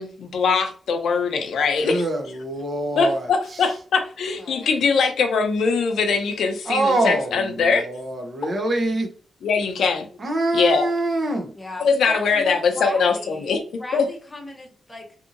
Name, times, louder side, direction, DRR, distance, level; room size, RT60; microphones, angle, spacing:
voice 1, 0.0-2.0 3.0-7.9 9.4-10.0 10.5-10.8 11.8-13.6 13.9-14.0, left 5 dB, 80° left, 5 dB, 0.5 m, -21 dB
voice 2, 1.8-3.7 6.6-9.1 10.2-11.5, right 2 dB, 40° right, 3 dB, 0.6 m, -25 dB
voice 3, 4.4-4.7 11.6-15.2, left 1 dB, 15° left, 1 dB, 0.7 m, -36 dB
2.7 x 2.6 x 2.5 m, 0.42 s
wide cardioid pair, 135°, 0 cm